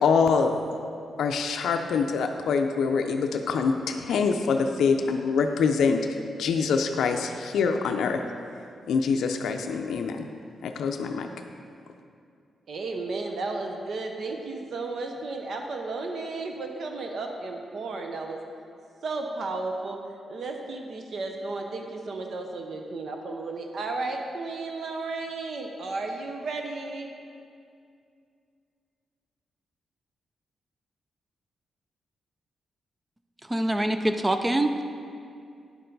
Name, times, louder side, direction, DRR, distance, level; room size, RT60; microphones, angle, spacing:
voice 1, 0.0-0.6 1.2-6.0 6.4-8.2 8.9-10.3 10.6-11.3, left 5 dB, 85° left, 5 dB, 0.4 m, -25 dB
voice 2, 12.7-18.4 19.0-20.0 20.3-27.1, right 3 dB, 60° right, 3 dB, 0.7 m, -33 dB
voice 3, 33.5-34.8, right 1 dB, 15° right, 8 dB, 0.3 m, -24 dB
9.5 x 6.7 x 3.9 m, 2.4 s
wide cardioid pair, 125°, 0 cm